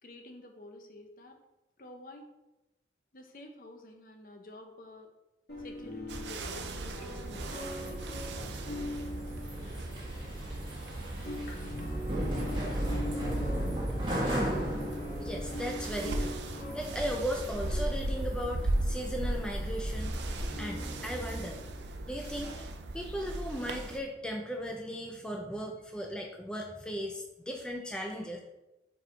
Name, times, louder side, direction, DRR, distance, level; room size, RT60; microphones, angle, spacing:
voice 1, 0.0-1.4 1.8-2.3 3.1-5.1 5.6-8.1, left 1 dB, 50° left, 4 dB, 0.7 m, -50 dB
sound 1, 5.5-10.8 11.1-22.5, left 1 dB, 75° left, 2.0 m, -41 dB
sound 2, 6.1-24.0, right 2 dB, 85° right, 0.6 m, -38 dB
sound 3, 7.2-21.4, right 1 dB, 30° right, 1.5 m, -37 dB
voice 2, 15.2-16.4 16.7-20.2 20.6-21.6 22.1-22.6 22.9-28.4, equal, 5° left, 1 dB, 0.5 m, -37 dB
4.6 x 4.1 x 4.9 m, 0.96 s
head